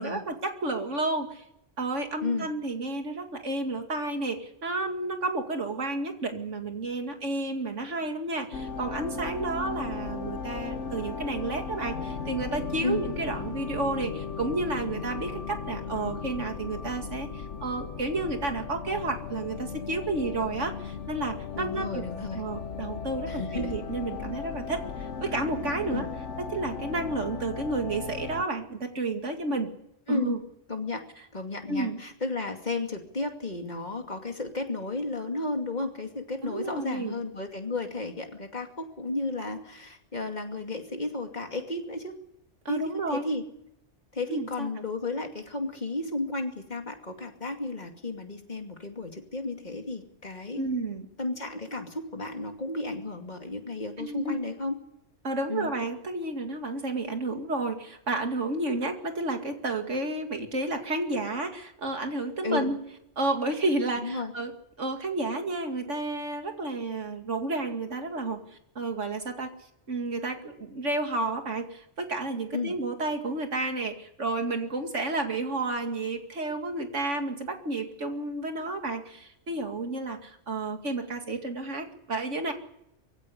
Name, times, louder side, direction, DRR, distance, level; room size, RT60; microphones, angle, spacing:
voice 1, 0.0-1.4 1.8-22.1 22.3-26.0 26.4-29.7 30.1-30.4 31.7-32.0 36.4-37.2 42.6-43.3 44.3-44.7 50.6-51.1 54.0-54.4 55.2-62.8 63.2-64.5 64.8-68.4 68.8-69.5 69.9-82.5, right 2 dB, 80° right, 5 dB, 2.7 m, -31 dB
sound 1, 8.5-28.5, left 5 dB, 75° left, 1.4 m, -36 dB
voice 2, 21.5-22.4 23.3-23.7 25.9-26.1 30.1-30.4 30.7-31.0 31.3-42.1 42.7-43.5 44.1-50.6 51.2-54.8 55.5-55.7 62.4-62.7 64.0-64.3 72.5-72.7, left 3 dB, 35° left, 4 dB, 2.6 m, -33 dB
23.0 x 16.0 x 9.9 m, 0.80 s
omnidirectional pair, 1.2 m